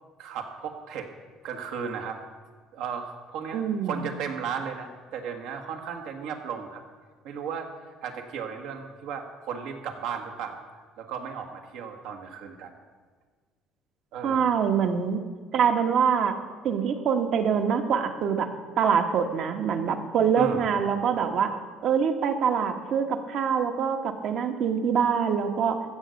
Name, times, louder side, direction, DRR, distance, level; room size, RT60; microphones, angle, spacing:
voice 1, 0.2-1.1 1.4-2.2 2.7-6.8 7.2-7.7 8.0-10.6 11.0-12.7 14.1-14.6 20.4-20.7, right 6 dB, 80° right, 4 dB, 1.6 m, -35 dB
voice 2, 3.5-4.1 14.2-15.2 15.5-16.3 16.6-18.5 18.8-21.6 21.8-25.8, right 7 dB, 55° right, 6 dB, 1.2 m, -24 dB
15.0 x 6.9 x 6.5 m, 1.5 s
cardioid pair, 120°, 0 cm